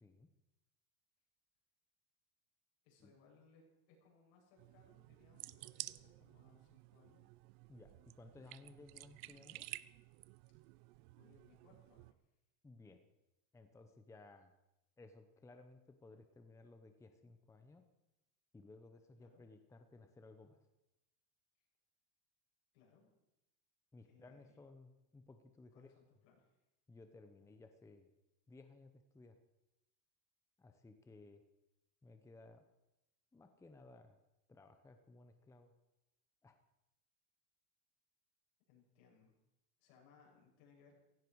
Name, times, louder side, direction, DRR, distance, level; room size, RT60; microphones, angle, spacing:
voice 1, 2.8-7.3 11.2-12.2 19.2-19.4 21.6-21.7 22.7-23.1 24.0-24.6 25.7-26.6 38.7-39.3 39.8-40.9, left 5 dB, 70° left, -2 dB, 7.7 m, -68 dB
sound 1, 4.6-12.1, right 20 dB, 85° right, 0.8 m, -53 dB
voice 2, 7.7-9.7 12.6-13.0 13.5-14.5 15.0-17.9 18.5-20.7 23.9-25.9 26.9-28.1 28.5-29.4 30.6-31.4 32.0-32.7 33.3-34.2 34.5-35.7 36.4-36.6, left 3 dB, 5° left, 7 dB, 0.8 m, -59 dB
17.0 x 16.5 x 4.7 m, 0.91 s
cardioid pair, 160°, 42 cm